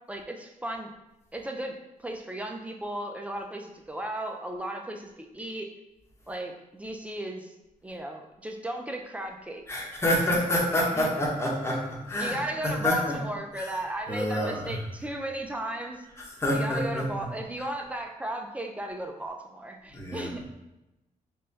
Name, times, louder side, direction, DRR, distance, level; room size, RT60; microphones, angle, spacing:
voice 1, 0.1-0.9 1.3-5.7 6.3-7.5 7.8-9.6 11.0-11.1 12.2-16.0 16.5-20.4, right 1 dB, 10° right, 2 dB, 0.4 m, -35 dB
voice 2, 9.7-12.4 12.6-13.2 13.6-13.7 14.1-14.8 16.2-17.1 17.6-17.7 19.9-20.3, left 1 dB, 15° left, -3 dB, 0.9 m, -27 dB
3.5 x 2.2 x 3.9 m, 0.95 s
cardioid pair, 115°, 15 cm